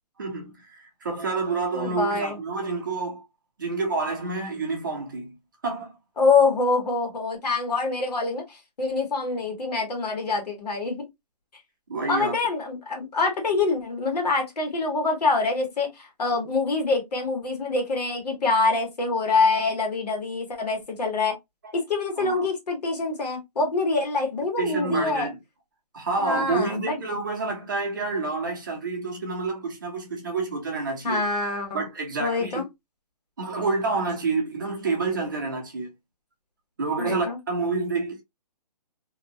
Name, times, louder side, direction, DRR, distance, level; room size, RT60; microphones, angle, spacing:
voice 1, 0.2-3.2 3.6-5.3 5.6-5.9 11.9-12.3 21.6-21.7 22.2-22.5 24.6-25.4 25.9-31.2 31.7-32.6 33.4-35.9 36.8-38.2, right 3 dB, 30° right, 0.7 m, -28 dB
voice 2, 1.7-2.4 6.2-11.1 12.1-21.3 21.7-25.3 26.2-27.0 31.0-31.9 32.2-32.7 37.0-37.4, left 3 dB, 75° left, 1.4 m, -25 dB
2.7 x 2.3 x 2.6 m
hypercardioid pair, 180°, 21 cm